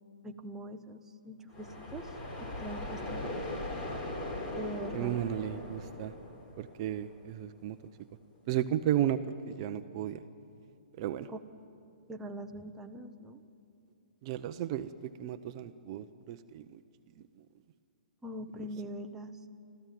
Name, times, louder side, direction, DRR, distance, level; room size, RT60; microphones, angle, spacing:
voice 1, 0.2-2.1 2.4-3.2 4.6-5.2 11.3-11.4 12.1-13.4 18.2-19.3, right 1 dB, 10° right, 4 dB, 0.9 m, -42 dB
sound 1, 1.5-7.3, left 1 dB, 25° left, 3.9 m, -40 dB
voice 2, 4.9-6.1 6.6-7.8 8.5-9.2 9.5-10.2 11.0-11.3 14.2-16.8 18.6-18.7, right 11 dB, 35° right, 10 dB, 0.7 m, -34 dB
26.0 x 14.5 x 9.2 m, 2.6 s
hypercardioid pair, 150°, 5 cm